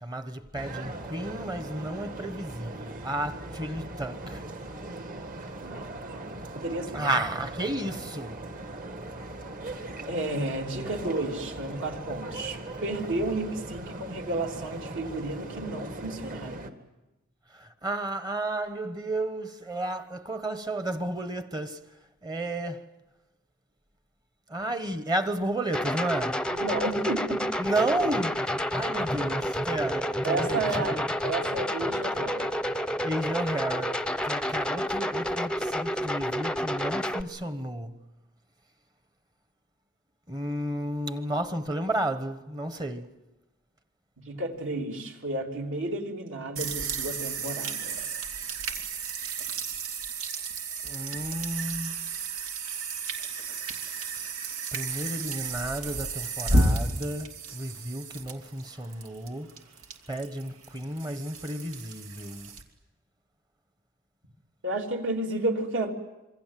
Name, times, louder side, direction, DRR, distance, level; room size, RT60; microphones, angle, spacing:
voice 1, 0.0-4.4 6.9-8.4 17.5-21.8 22.2-22.8 24.5-26.5 27.6-31.1 33.0-37.9 40.3-43.1 50.8-52.0 54.7-59.5 60.1-62.5, right 1 dB, 20° right, 1.2 m, -32 dB
sound 1, 0.6-16.7, right 2 dB, 40° right, 2.0 m, -39 dB
voice 2, 5.6-6.3 6.5-7.1 10.1-16.7 26.5-27.4 30.2-31.0 31.2-32.5 44.2-48.1 64.6-65.9, right 2 dB, 60° right, 3.5 m, -32 dB
sound 2, 25.7-37.2, equal, 5° left, 0.8 m, -29 dB
sound 3, 46.6-62.6, right 2 dB, 85° right, 2.9 m, -32 dB
27.0 x 24.5 x 7.7 m
head